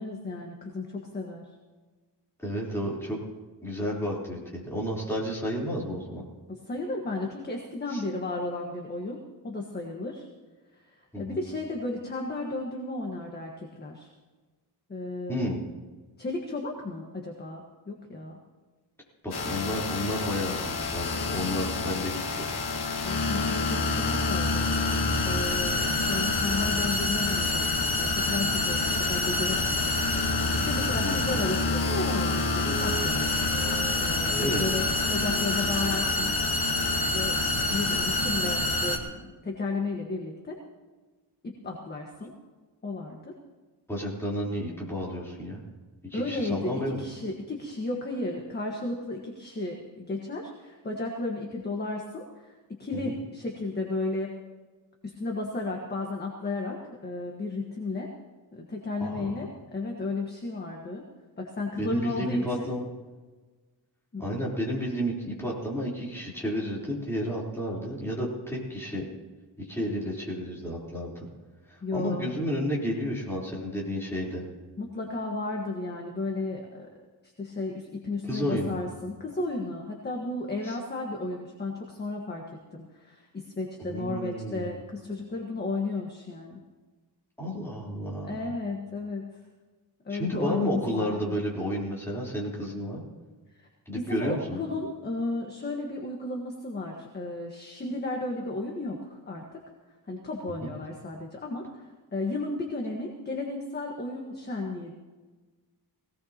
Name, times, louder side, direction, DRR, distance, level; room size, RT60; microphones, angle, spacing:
voice 1, 0.0-1.4 6.5-10.3 11.0-14.1 14.9-15.5 16.2-17.6 17.9-18.4 23.0-24.7 25.2-27.7 28.0-29.7 30.6-33.3 34.0-34.8 35.1-36.3 37.0-40.6 41.6-42.3 42.8-43.3 46.1-54.3 55.0-58.1 58.5-61.0 61.4-62.7 64.1-64.4 71.8-72.3 74.8-76.9 77.4-86.6 88.2-89.3 90.0-91.4 93.6-93.7 93.9-99.6 100.1-101.8 102.1-104.9, left 2 dB, 25° left, 0 dB, 1.5 m, -34 dB
voice 2, 2.4-3.2 3.6-6.2 7.9-8.0 11.1-11.4 15.3-15.6 19.2-22.5 30.9-31.3 34.4-34.6 43.9-45.6 46.1-47.0 52.9-53.1 59.0-59.4 61.8-62.9 64.2-69.1 69.6-71.3 71.7-74.5 78.2-78.8 80.6-80.8 83.8-84.8 87.4-88.4 90.1-93.0 93.9-94.6 100.6-100.7, equal, 5° left, -5 dB, 3.8 m, -31 dB
sound 1, 19.3-39.0, left 3 dB, 65° left, 2.0 m, -27 dB
Wind instrument woodwind instrument, 30.5-37.3, right 4 dB, 90° right, 2.4 m, -42 dB
21.0 x 17.5 x 2.9 m, 1.3 s
wide cardioid pair, 170°, 42 cm